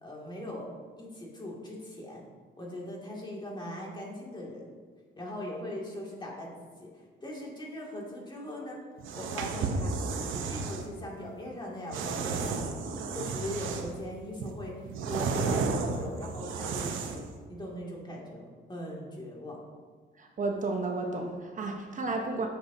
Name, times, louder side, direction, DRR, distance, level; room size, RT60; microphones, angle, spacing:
voice 1, 0.0-0.7 1.0-2.2 2.6-4.6 5.2-6.5 6.8-6.9 7.2-8.8 9.1-12.8 13.1-14.7 15.0-19.6, left 1 dB, 20° left, -3 dB, 2.2 m, -40 dB
sound 1, 9.0-10.8 11.9-14.0 14.4-17.3, right 4 dB, 80° right, 0.8 m, -33 dB
voice 2, 20.2-22.5, right 3 dB, 40° right, 2 dB, 0.9 m, -32 dB
10.0 x 7.1 x 2.7 m, 1.5 s
cardioid pair, 90°, 20 cm